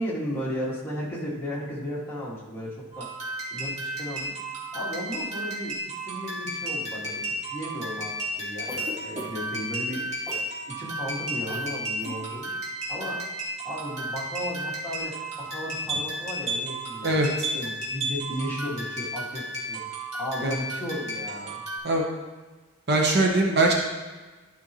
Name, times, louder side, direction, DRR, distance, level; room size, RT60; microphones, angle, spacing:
voice 1, 0.0-3.1 3.5-4.3 4.7-10.3 10.7-12.5 12.9-13.2 13.6-21.6, equal, 10° left, -7 dB, 2.2 m, -35 dB
sound 1, 2.9-21.8, right 1 dB, 30° right, 2.3 m, -33 dB
Cough, 8.7-9.5 10.3-10.5 11.5-11.7 12.0-12.2, left 1 dB, 10° right, 1.0 m, -38 dB
voice 2, 22.9-23.7, right 2 dB, 50° right, 0 dB, 1.1 m, -21 dB
12.5 x 5.5 x 3.1 m, 1.3 s
head